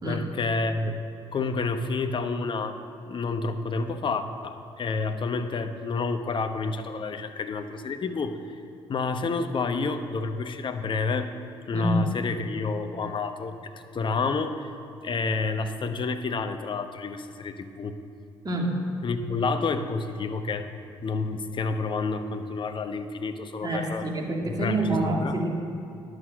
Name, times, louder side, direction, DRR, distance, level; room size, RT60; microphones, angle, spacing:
voice 1, 0.0-1.0 1.3-2.8 3.1-8.6 8.9-11.3 11.7-14.7 15.0-18.0 19.0-20.7 21.0-24.1 24.5-25.4, left 4 dB, 40° left, 8 dB, 0.9 m, -29 dB
voice 2, 11.7-12.0 18.4-18.8 23.6-25.5, right 2 dB, 35° right, 0 dB, 2.2 m, -27 dB
11.0 x 6.4 x 7.6 m, 2.6 s
hypercardioid pair, 55°, 12 cm